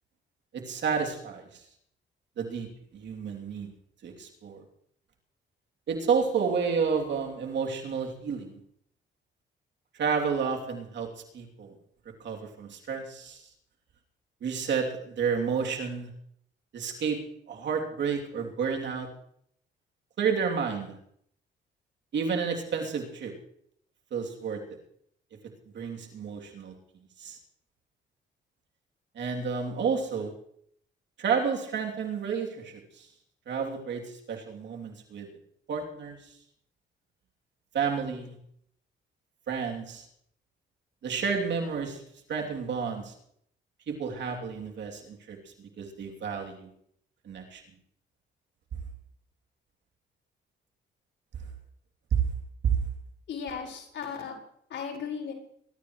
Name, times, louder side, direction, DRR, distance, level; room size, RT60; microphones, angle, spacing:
voice 1, 0.5-1.6 2.4-2.7 2.9-3.7 4.0-4.6 5.9-8.6 10.0-11.1 11.3-11.7 12.2-13.4 14.4-16.1 16.7-19.1 20.2-21.0 22.1-23.3 24.1-24.6 25.7-26.7 27.2-27.4 29.1-30.3 31.2-33.0 33.5-35.3 35.7-36.2 37.7-38.3 39.5-40.0 41.0-42.0 42.3-43.1 43.9-46.7 47.3-47.6 52.6-52.7, right 6 dB, 65° right, 1 dB, 3.0 m, -31 dB
voice 2, 53.3-54.3 54.7-55.3, left 6 dB, 65° left, -1 dB, 5.1 m, -36 dB
23.0 x 12.5 x 3.2 m, 0.67 s
cardioid pair, 90°, 20 cm